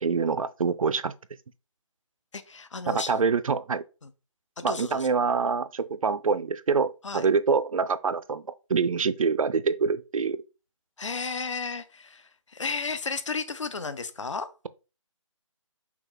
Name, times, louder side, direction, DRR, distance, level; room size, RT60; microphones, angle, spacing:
voice 1, 0.0-1.1 2.9-3.8 4.6-8.4 8.7-10.4, right 5 dB, 85° right, 0.5 m, -25 dB
voice 2, 2.3-3.1 4.0-4.1 4.6-5.1 7.0-7.3 11.0-14.5, left 4 dB, 65° left, 0.7 m, -33 dB
5.8 x 2.4 x 3.7 m
hypercardioid pair, 175°, 17 cm